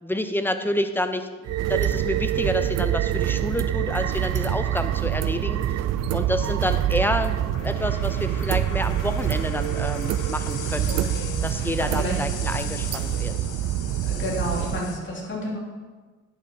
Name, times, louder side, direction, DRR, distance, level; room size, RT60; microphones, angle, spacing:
voice 1, 0.0-1.3 1.7-5.6 6.1-11.0 11.4-13.4, left 1 dB, 5° left, 9 dB, 0.7 m, -28 dB
sound 1, 1.4-14.8, right 12 dB, 60° right, 0.5 m, -26 dB
sound 2, 5.0-15.0, left 6 dB, 85° left, 1.1 m, -39 dB
voice 2, 10.9-12.2 14.0-15.6, equal, 40° left, -3 dB, 3.1 m, -31 dB
10.5 x 6.1 x 4.7 m, 1.3 s
cardioid pair, 90°, 30 cm